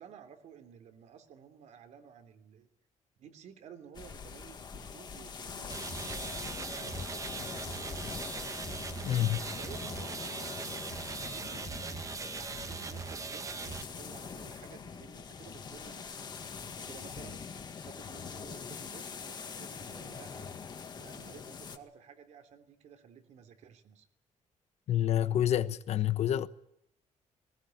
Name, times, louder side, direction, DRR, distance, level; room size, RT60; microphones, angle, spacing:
voice 1, 0.0-2.7 3.2-8.2 9.4-20.5 20.9-24.1, right 8 dB, 70° right, 3.3 m, -54 dB
sound 1, 3.9-21.8, left 6 dB, 35° left, 2.0 m, -43 dB
sound 2, 5.7-13.8, right 4 dB, 25° right, 1.2 m, -40 dB
voice 2, 9.0-9.4 24.9-26.5, left 11 dB, 65° left, 1.1 m, -28 dB
20.5 x 19.5 x 9.6 m
cardioid pair, 160°, 12 cm